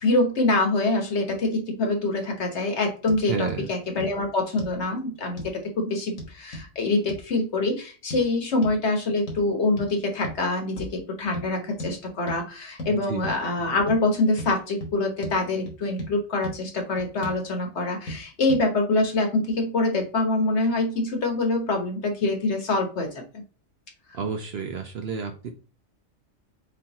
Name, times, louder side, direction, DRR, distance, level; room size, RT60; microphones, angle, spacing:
voice 1, 0.0-5.4 5.8-23.2, left 2 dB, 55° left, 3 dB, 1.4 m, -25 dB
sound 1, 3.1-3.2 3.5-3.6 4.0-4.1 4.6-4.8 5.4-5.6 6.2-6.7 7.1-7.2 8.1-8.2 8.6-8.8 9.3-9.5 9.8-9.9 10.2-10.4 10.8-11.0 11.3-11.5 11.8-11.9 12.3-12.4 12.8-12.9 13.2-13.4 13.9-14.0 14.4-14.5 14.8-14.9 15.2-15.4 15.7-16.1 16.4-16.6 17.0-17.4 18.1-18.2 18.5-18.6, equal, 85° left, 1.8 m, -35 dB
voice 2, 3.3-3.7 13.1-13.2 24.1-25.5, right 6 dB, 60° right, 6 dB, 0.7 m, -30 dB
4.2 x 4.2 x 2.8 m, 0.36 s
omnidirectional pair, 1.4 m